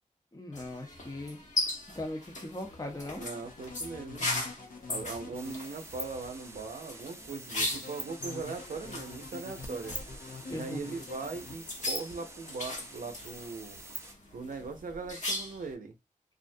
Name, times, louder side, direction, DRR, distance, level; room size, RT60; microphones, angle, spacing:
voice 1, 0.3-1.4 1.9-3.2 10.5-10.9, left 1 dB, 30° left, 0.7 m, -39 dB
sound 1, 0.5-15.7, left 2 dB, 60° left, 1.0 m, -39 dB
sound 2, 3.2-5.5 7.6-11.5, left 4 dB, 85° left, 0.5 m, -45 dB
voice 2, 3.2-4.3 4.9-10.0 10.5-13.8 14.3-16.0, right 4 dB, 85° right, 0.5 m, -40 dB
sound 3, 5.3-14.1, right 1 dB, 20° right, 0.5 m, -46 dB
2.4 x 2.1 x 2.6 m
cardioid pair, 40°, 14 cm